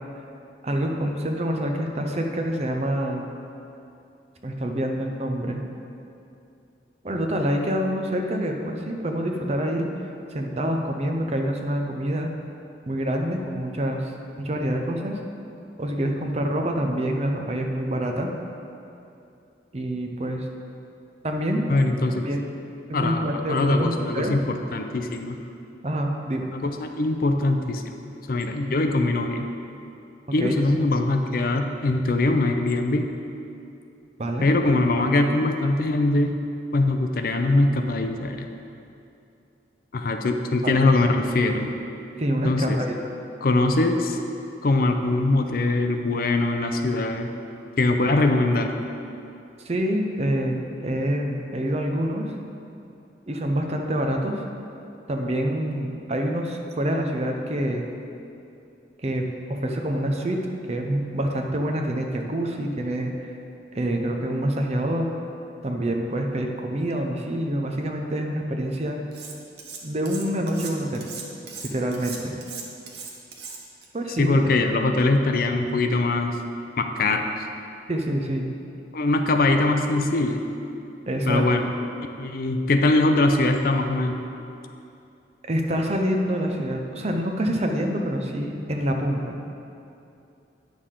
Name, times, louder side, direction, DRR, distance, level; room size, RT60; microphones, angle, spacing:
voice 1, 0.6-3.3 4.4-5.6 7.0-9.9 10.3-12.3 12.9-14.1 14.4-15.2 15.8-18.3 19.7-20.5 21.2-21.7 22.2-22.4 22.9-24.3 25.8-26.5 30.4-30.6 34.2-34.5 40.6-40.8 42.2-42.9 49.6-52.3 53.3-54.4 55.1-57.8 59.0-60.4 60.7-63.3 63.7-65.1 65.6-69.0 69.8-71.1 71.7-72.3 73.9-74.5 77.9-78.5 81.1-81.5 85.5-89.4, right 1 dB, 35° right, 3 dB, 0.7 m, -26 dB
voice 2, 21.7-22.3 22.9-25.4 26.5-27.8 28.3-29.5 30.3-33.1 34.4-36.4 36.7-38.5 39.9-41.7 42.4-42.8 43.4-44.2 44.6-47.3 47.8-48.7 74.2-76.4 76.8-77.3 78.9-80.4 81.3-81.7 82.2-84.2, left 2 dB, 55° left, 6 dB, 0.5 m, -22 dB
Cutlery silverware, 69.1-69.8 70.0-73.9, right 5 dB, 60° right, 0.9 m, -38 dB
9.4 x 6.5 x 3.8 m, 2.7 s
head